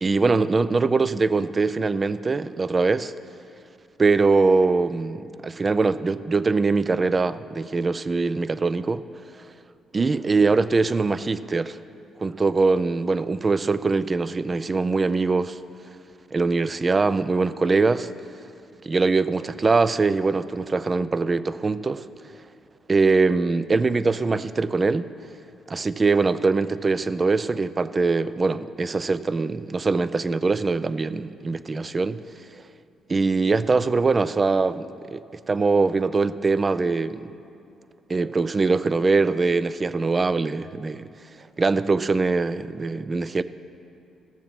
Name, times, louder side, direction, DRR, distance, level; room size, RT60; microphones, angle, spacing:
voice 1, 0.0-3.1 4.0-9.0 9.9-11.8 12.2-15.6 16.3-18.1 18.8-22.1 22.9-25.1 25.7-32.2 32.5-32.6 33.1-37.3 38.1-41.0 41.6-43.4, right 4 dB, 30° right, 0.4 m, -22 dB
15.0 x 7.1 x 5.9 m
cardioid pair, 90°, 0 cm